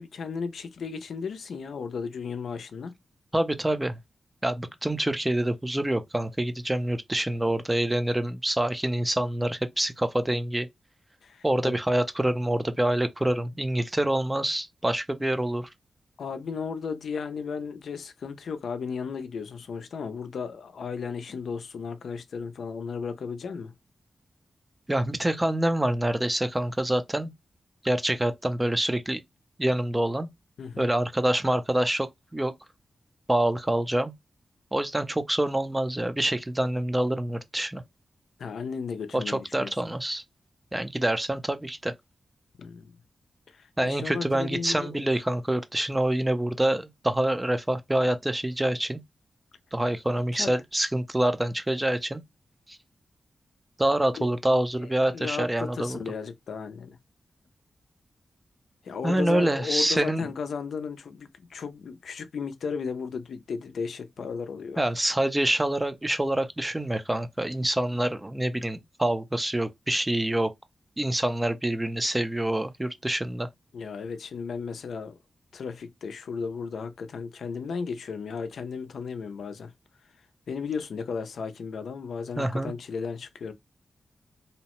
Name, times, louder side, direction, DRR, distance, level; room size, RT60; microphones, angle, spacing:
voice 1, 0.0-2.9 11.2-11.8 16.2-23.7 30.6-30.9 38.4-39.7 42.6-43.0 43.5-45.1 50.3-50.6 54.2-54.3 54.8-57.0 58.8-64.8 73.7-75.2 75.5-79.7 80.5-83.5, left 5 dB, 85° left, 0.4 m, -35 dB
voice 2, 3.3-4.0 4.4-10.7 11.4-15.7 24.9-27.3 27.8-29.2 29.6-30.3 30.8-32.1 32.3-32.5 33.3-34.1 34.7-37.8 39.1-40.2 40.7-41.9 43.8-49.0 49.7-52.2 52.7-52.8 53.8-56.0 59.0-60.2 64.8-70.5 71.0-73.5 82.4-82.7, right 1 dB, 15° right, 0.4 m, -26 dB
2.7 x 2.0 x 2.9 m
wide cardioid pair, 90°, 0 cm